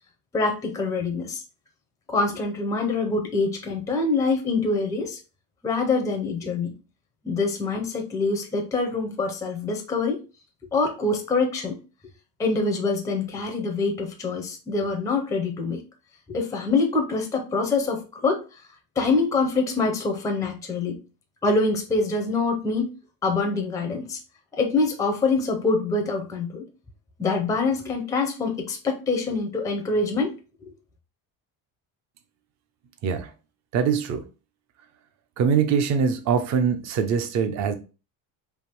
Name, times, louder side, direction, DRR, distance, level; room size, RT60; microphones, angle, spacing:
voice 1, 0.3-1.4 2.1-5.2 5.6-6.7 7.2-10.2 10.7-11.8 12.4-15.8 16.3-18.4 19.0-21.0 21.4-22.9 23.2-24.2 24.6-26.6 27.2-30.3 30.6-30.7, left 3 dB, 10° left, 0.5 m, -25 dB
voice 2, 33.7-34.2 35.4-37.7, right 6 dB, 40° right, 0.6 m, -23 dB
3.5 x 2.7 x 4.3 m
cardioid pair, 175°, 43 cm